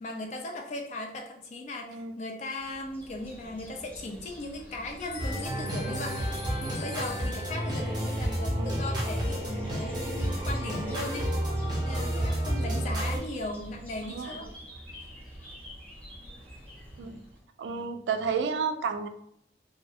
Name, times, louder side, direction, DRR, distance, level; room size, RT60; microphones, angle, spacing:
voice 1, 0.0-6.2 6.6-11.3 11.8-14.5, left 2 dB, 40° left, 2 dB, 0.3 m, -38 dB
sound 1, 2.6-17.4, equal, 10° left, 0.8 m, -46 dB
sound 2, 5.0-7.8, left 4 dB, 75° left, 0.6 m, -42 dB
sound 3, 5.2-13.2, right 1 dB, 25° right, 0.6 m, -30 dB
voice 2, 17.6-19.1, right 5 dB, 90° right, 8 dB, 0.3 m, -31 dB
2.6 x 2.0 x 2.7 m, 0.74 s
head